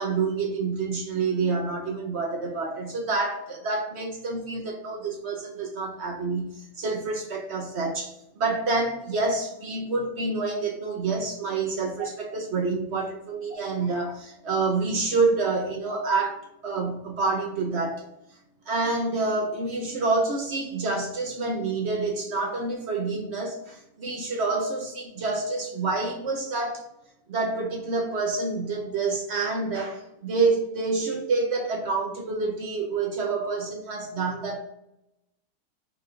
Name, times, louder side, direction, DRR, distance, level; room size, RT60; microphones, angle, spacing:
voice 1, 0.0-18.0 18.7-26.8 27.3-34.6, right 3 dB, 55° right, 0.8 m, -28 dB
4.9 x 2.5 x 4.4 m
omnidirectional pair, 1.7 m